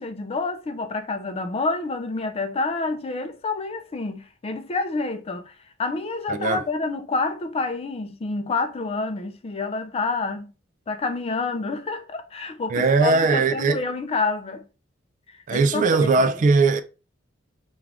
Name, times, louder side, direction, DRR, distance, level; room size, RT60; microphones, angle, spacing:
voice 1, 0.0-10.5 10.9-14.7 15.3-16.3, left 3 dB, 30° left, 0.4 m, -28 dB
voice 2, 6.3-6.6 12.7-13.8 15.5-16.8, right 4 dB, 40° right, 0.3 m, -19 dB
3.6 x 2.4 x 3.3 m
head